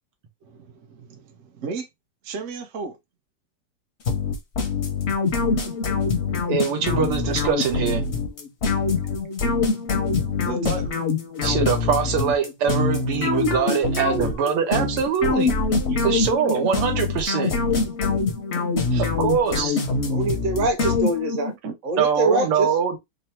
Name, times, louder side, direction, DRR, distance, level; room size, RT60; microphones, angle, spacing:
voice 1, 0.4-1.8 2.2-2.9 9.5-9.6 10.4-10.9 14.8-14.9 15.9-16.0 18.9-19.1 21.6-21.7, right 4 dB, 65° right, 0.7 m, -34 dB
sound 1, 4.1-21.5, left 4 dB, 55° left, 0.7 m, -24 dB
voice 2, 6.5-8.0 11.4-15.5 16.0-17.5 19.0-19.8 22.0-23.0, right 7 dB, 85° right, 1.9 m, -23 dB
voice 3, 20.1-21.5 21.8-22.7, right 2 dB, 45° right, 1.1 m, -24 dB
4.0 x 2.0 x 4.3 m
omnidirectional pair, 2.4 m